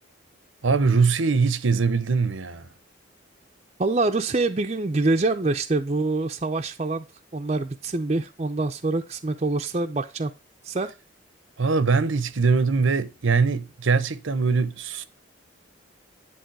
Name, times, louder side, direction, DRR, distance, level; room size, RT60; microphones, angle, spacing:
voice 1, 0.6-2.7 11.6-15.0, right 4 dB, 75° right, 0.8 m, -22 dB
voice 2, 3.8-7.0 7.3-10.3 10.6-10.9, right 2 dB, 30° right, 0.6 m, -25 dB
10.5 x 3.6 x 4.7 m
head